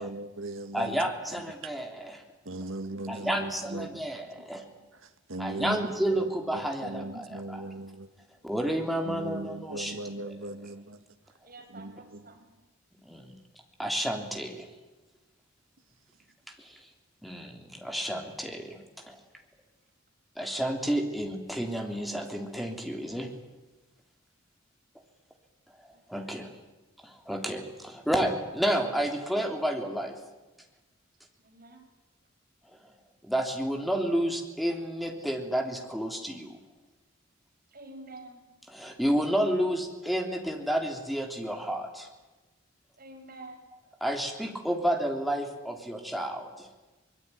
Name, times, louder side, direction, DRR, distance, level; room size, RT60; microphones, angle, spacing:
voice 1, 0.0-1.0 2.5-4.1 5.3-5.8 6.1-6.2 6.8-8.1 9.1-11.0 11.8-11.9, right 2 dB, 80° right, 1.8 m, -37 dB
voice 2, 0.7-2.2 3.1-4.7 5.4-7.6 8.4-10.5 13.0-13.3 13.8-14.7 16.6-16.8 17.2-19.2 20.4-23.3 26.1-26.5 27.0-30.2 33.2-36.6 38.7-42.1 44.0-46.7, equal, ahead, 3.4 m, -31 dB
voice 3, 11.4-12.7 16.1-16.2 25.9-26.0 31.4-31.8 37.7-38.4 43.0-43.7, right 2 dB, 45° right, 5.8 m, -48 dB
24.5 x 21.0 x 9.7 m
head